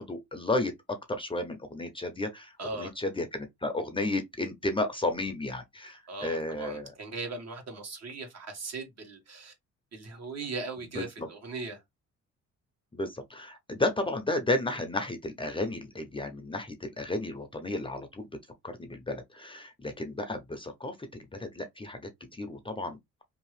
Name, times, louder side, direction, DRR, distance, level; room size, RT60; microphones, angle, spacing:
voice 1, 0.0-6.9 11.0-11.3 12.9-18.3 18.6-22.1 22.4-23.0, left 2 dB, 15° left, 0.6 m, -33 dB
voice 2, 2.6-2.9 6.1-9.5 9.9-11.8, right 3 dB, 60° right, 1.4 m, -39 dB
2.8 x 2.4 x 3.1 m
cardioid pair, 90°, 30 cm